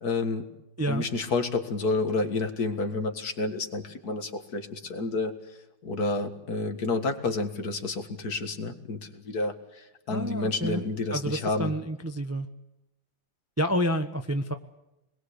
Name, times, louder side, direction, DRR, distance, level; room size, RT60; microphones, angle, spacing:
voice 1, 0.0-0.5 0.9-5.3 5.8-11.7, left 3 dB, 45° left, 6 dB, 2.2 m, -30 dB
voice 2, 10.1-10.8 11.1-12.5 13.6-14.5, equal, 25° right, 6 dB, 0.3 m, -29 dB
27.0 x 21.5 x 8.2 m, 0.90 s
omnidirectional pair, 2.3 m